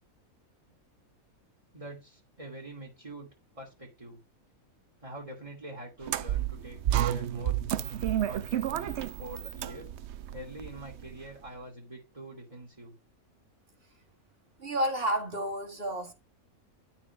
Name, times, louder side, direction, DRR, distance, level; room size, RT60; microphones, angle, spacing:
voice 1, 1.7-3.3 3.5-4.2 5.0-7.6 8.2-9.9 10.3-12.9, right 1 dB, 20° right, 2.8 m, -45 dB
sound 1, 6.0-11.3, right 11 dB, 60° right, 0.8 m, -31 dB
voice 2, 14.6-16.1, right 1 dB, 40° right, 2.2 m, -30 dB
12.5 x 4.6 x 4.7 m
omnidirectional pair, 1.5 m